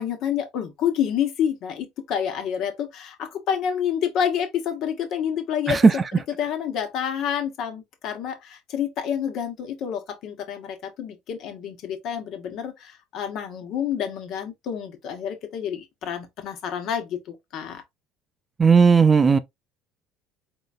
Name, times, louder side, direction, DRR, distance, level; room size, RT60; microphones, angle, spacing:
voice 1, 0.0-17.8, left 8 dB, 60° left, 1.3 m, -28 dB
voice 2, 18.6-19.4, right 5 dB, 25° right, 0.5 m, -15 dB
3.8 x 3.7 x 2.6 m
hypercardioid pair, 80°, 0 cm